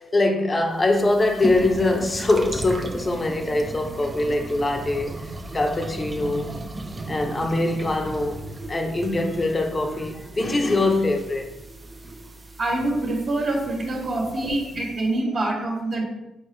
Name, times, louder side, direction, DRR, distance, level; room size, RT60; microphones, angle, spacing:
voice 1, 0.0-6.5 7.1-8.4 8.7-11.5, left 2 dB, 25° left, 3 dB, 1.0 m, -23 dB
sound 1, 0.8-15.1, right 1 dB, 20° right, 0.8 m, -36 dB
voice 2, 12.6-16.0, right 2 dB, 55° right, -4 dB, 1.7 m, -25 dB
7.8 x 4.0 x 3.3 m, 0.94 s
cardioid pair, 90°, 0 cm